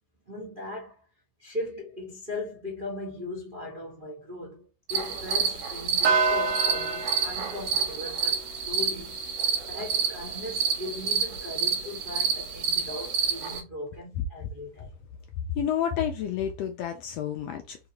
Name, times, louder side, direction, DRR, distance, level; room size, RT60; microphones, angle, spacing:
voice 1, 0.3-1.0 1.4-9.2 9.7-14.9, left 2 dB, 80° right, 0.4 m, -38 dB
sound 1, 4.9-13.6, right 6 dB, 60° right, 1.8 m, -27 dB
voice 2, 15.5-17.8, left 9 dB, 80° left, 1.5 m, -29 dB
4.8 x 3.0 x 2.8 m
omnidirectional pair, 3.4 m